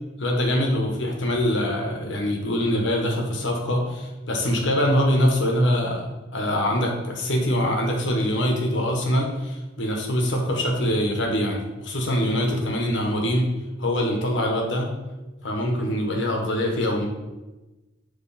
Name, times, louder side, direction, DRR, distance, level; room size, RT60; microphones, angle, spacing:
voice 1, 0.2-13.4 13.8-14.9 15.4-17.1, equal, 75° left, 1 dB, 1.1 m, -24 dB
7.2 x 3.3 x 4.2 m, 1.1 s
head